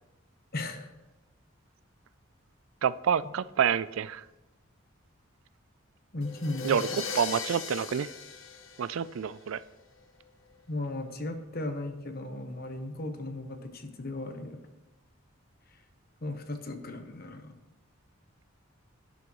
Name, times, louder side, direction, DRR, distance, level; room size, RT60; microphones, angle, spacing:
voice 1, 0.5-0.9 6.1-6.8 10.7-14.6 16.2-17.5, left 2 dB, 50° left, 1.0 m, -36 dB
voice 2, 2.8-4.2 6.6-8.1 8.8-9.6, right 7 dB, 80° right, 0.4 m, -28 dB
sound 1, 6.2-9.5, left 5 dB, 80° left, 1.0 m, -38 dB
12.0 x 11.5 x 3.1 m
head